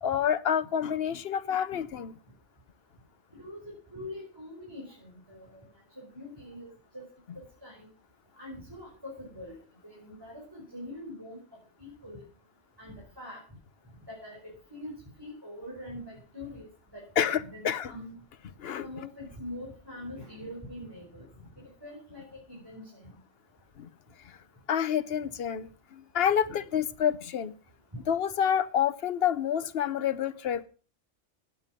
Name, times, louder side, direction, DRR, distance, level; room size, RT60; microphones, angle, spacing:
voice 1, 0.0-2.2 17.2-17.9 18.6-18.9 23.8-23.9 24.7-27.5 28.1-30.6, left 9 dB, 55° left, 13 dB, 1.0 m, -28 dB
voice 2, 3.3-5.6 6.0-7.1 7.4-7.9 8.4-9.6 9.8-11.4 11.8-12.2 12.8-13.4 14.1-14.4 14.7-16.7 16.9-17.0 17.4-18.2 18.8-21.3 21.8-23.1, left 1 dB, 20° right, -4 dB, 5.2 m, -43 dB
16.5 x 9.3 x 5.2 m, 0.38 s
omnidirectional pair, 1.2 m